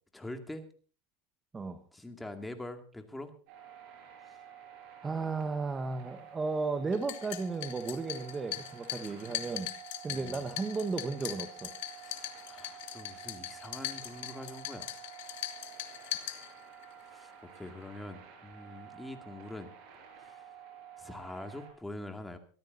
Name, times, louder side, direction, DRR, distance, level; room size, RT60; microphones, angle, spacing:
voice 1, 0.1-0.7 1.9-3.3 10.1-10.5 11.9-14.9 16.9-19.7 20.1-20.6 21.0-22.4, left 1 dB, 5° left, 6 dB, 2.3 m, -44 dB
sound 1, 3.5-21.7, right 9 dB, 55° right, 7.1 m, -51 dB
voice 2, 5.0-9.7 10.0-11.7, right 4 dB, 15° right, 7 dB, 1.3 m, -34 dB
sound 2, 6.9-16.9, left 14 dB, 75° left, 1.9 m, -41 dB
23.5 x 14.0 x 2.7 m, 0.40 s
supercardioid pair, 125°, 0 cm